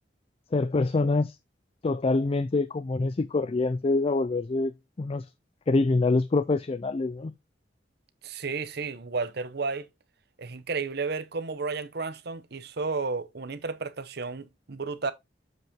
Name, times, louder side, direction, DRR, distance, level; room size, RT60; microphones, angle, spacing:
voice 1, 0.5-1.3 1.8-5.2 5.7-7.3, left 3 dB, 35° left, 0.4 m, -25 dB
voice 2, 8.2-9.9 10.4-15.1, right 4 dB, 60° right, 0.8 m, -32 dB
7.7 x 5.5 x 3.6 m
head